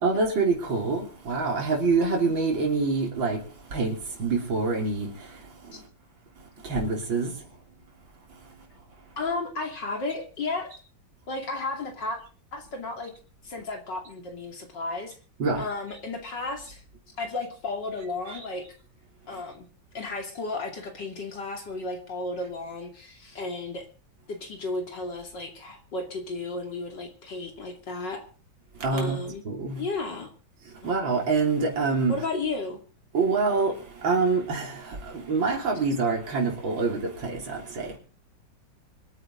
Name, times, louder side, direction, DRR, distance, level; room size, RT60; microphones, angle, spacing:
voice 1, 0.0-3.4 3.7-5.1 6.7-7.3 15.4-15.6 18.3-18.4 28.8-29.2 29.5-29.8 30.8-32.1 33.1-33.7 34.0-34.8 35.3-37.9, right 4 dB, 80° right, 3.9 m, -25 dB
voice 2, 9.2-10.7 11.3-12.2 12.5-13.1 13.4-15.2 15.6-16.8 17.2-18.7 19.3-19.7 19.9-23.9 24.3-28.2 28.9-29.4 29.8-30.3 32.1-32.8, left 3 dB, 65° left, 3.3 m, -33 dB
24.5 x 9.3 x 3.8 m
omnidirectional pair, 2.1 m